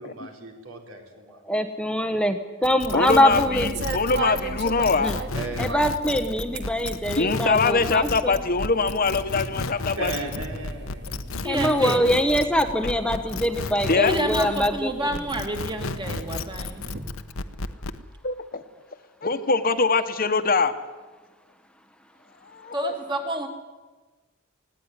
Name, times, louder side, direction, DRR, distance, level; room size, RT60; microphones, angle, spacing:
voice 1, 0.0-1.4 5.3-5.8 10.0-11.1, right 2 dB, 75° right, 3 dB, 4.1 m, -36 dB
voice 2, 1.5-3.7 5.0-5.2 5.6-8.4 11.5-15.1, equal, 5° left, 7 dB, 1.0 m, -23 dB
sound 1, 2.6-14.8 15.1-18.0, left 3 dB, 75° left, 1.0 m, -33 dB
voice 3, 2.9-5.1 7.2-10.1 13.8-14.1 18.2-18.6 19.2-20.7 22.5-22.9, left 4 dB, 45° left, 9 dB, 1.2 m, -23 dB
sound 2, 3.2-17.0, right 2 dB, 55° right, 2.2 m, -38 dB
voice 4, 11.4-12.0 14.1-16.8 22.7-23.5, right 1 dB, 20° right, 4 dB, 2.7 m, -29 dB
19.0 x 16.5 x 9.8 m, 1.2 s
head